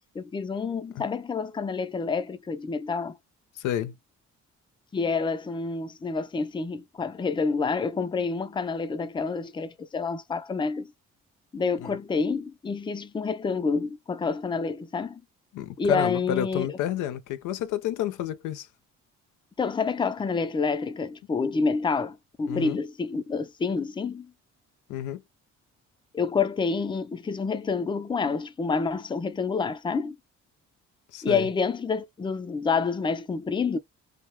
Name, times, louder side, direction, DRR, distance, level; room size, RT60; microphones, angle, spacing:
voice 1, 0.1-3.2 4.9-10.9 11.5-15.2 15.8-16.8 19.6-24.3 26.1-30.2 31.2-33.8, left 4 dB, 15° left, 0.4 m, -28 dB
voice 2, 3.6-3.9 11.8-12.0 15.5-18.7 22.4-22.8 24.9-25.2 31.1-31.5, left 11 dB, 85° left, 0.5 m, -30 dB
2.3 x 2.1 x 3.0 m
cardioid pair, 90°, 30 cm